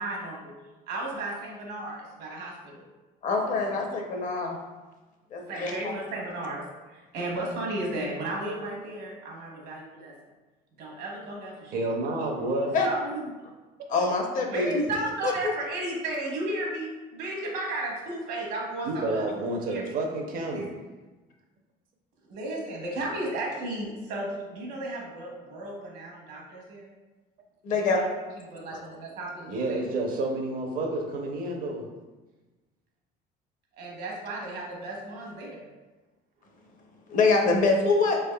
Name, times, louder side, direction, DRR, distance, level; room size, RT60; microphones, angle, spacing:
voice 1, 0.0-0.5 0.9-2.9 5.5-10.1 10.8-11.9 12.8-13.2 14.5-20.0 20.5-20.6 22.3-26.9 27.9-28.1 28.4-29.8 33.8-35.7, right 2 dB, 70° right, -2 dB, 1.0 m, -34 dB
voice 2, 3.2-4.6 5.3-5.9 12.7-12.9 13.9-14.8 15.2-15.5 27.6-28.0 37.1-38.2, left 3 dB, 45° left, 1 dB, 0.6 m, -25 dB
voice 3, 11.7-12.7 18.8-20.7 29.5-31.9, right 2 dB, 55° right, 2 dB, 0.6 m, -29 dB
3.8 x 3.4 x 2.2 m, 1.2 s
cardioid pair, 155°, 18 cm